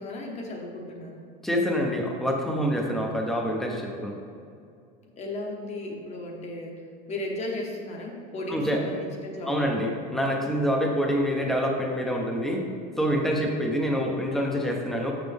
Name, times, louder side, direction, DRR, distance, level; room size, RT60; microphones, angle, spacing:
voice 1, 0.0-1.3 5.2-9.9 13.3-13.8, left 1 dB, 35° left, 1 dB, 1.2 m, -35 dB
voice 2, 1.4-4.1 8.5-8.8 9.5-12.6 13.0-15.1, equal, ahead, 0 dB, 0.8 m, -26 dB
6.6 x 6.3 x 3.4 m, 2.4 s
cardioid pair, 135°, 20 cm